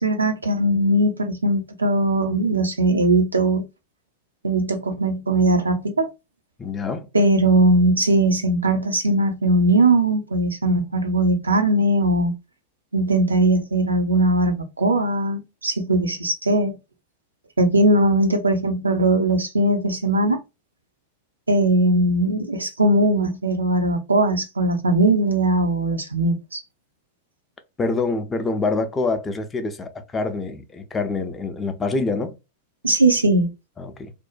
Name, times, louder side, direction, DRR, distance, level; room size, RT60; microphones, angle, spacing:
voice 1, 0.0-3.6 4.4-6.1 7.1-12.3 12.9-16.8 17.6-20.4 21.5-26.6 32.8-33.5, right 1 dB, 80° right, 0.5 m, -19 dB
voice 2, 6.6-7.1 27.8-32.4 33.8-34.1, left 3 dB, 20° left, 0.4 m, -26 dB
2.5 x 2.1 x 2.3 m
figure-of-eight pair, 90°, 0 cm